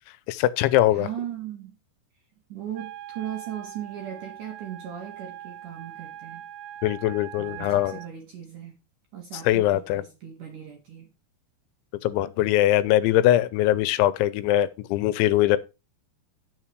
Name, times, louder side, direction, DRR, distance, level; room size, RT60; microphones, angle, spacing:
voice 1, 0.3-1.1 6.8-8.0 9.4-10.0 12.0-15.6, left 14 dB, 85° left, 3.0 m, -22 dB
voice 2, 0.9-1.8 2.5-6.4 7.4-8.7 9.1-11.1, right 10 dB, 65° right, 2.2 m, -38 dB
Wind instrument woodwind instrument, 2.7-8.1, right 12 dB, 85° right, 3.2 m, -42 dB
9.0 x 6.5 x 4.6 m
omnidirectional pair, 5.3 m